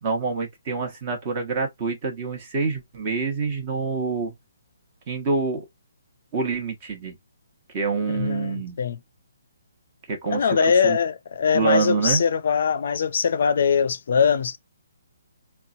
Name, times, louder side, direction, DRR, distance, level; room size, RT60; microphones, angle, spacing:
voice 1, 0.0-4.3 5.1-5.7 6.3-7.2 7.7-8.8 10.1-11.0 11.5-12.2, right 4 dB, 35° right, 1.3 m, -26 dB
voice 2, 8.1-9.0 10.3-14.6, left 6 dB, 55° left, 0.4 m, -22 dB
3.8 x 2.2 x 2.4 m
figure-of-eight pair, 140°, 0 cm